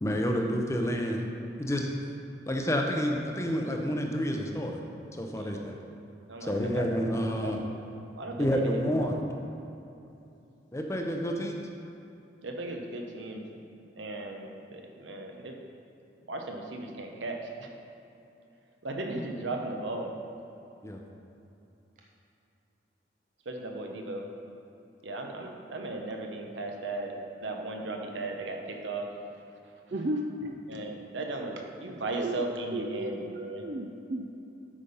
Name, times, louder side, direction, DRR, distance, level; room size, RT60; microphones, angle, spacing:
voice 1, 0.0-1.2 1.6-1.9 2.5-4.8 5.1-5.7 6.4-7.6 8.4-9.2 10.7-11.5 20.8-21.0, equal, 15° left, 2 dB, 0.6 m, -29 dB
voice 2, 5.4-5.7 6.3-6.9 7.4-7.7 8.1-9.1 12.4-13.4 14.0-15.6 16.3-17.7 18.8-20.1 23.5-24.3 25.0-29.1 30.7-33.6, right 2 dB, 80° right, 2 dB, 0.9 m, -36 dB
voice 3, 29.9-30.6 32.2-32.4 32.7-34.3, right 1 dB, 40° right, 0 dB, 0.4 m, -34 dB
8.5 x 5.2 x 5.4 m, 2.8 s
head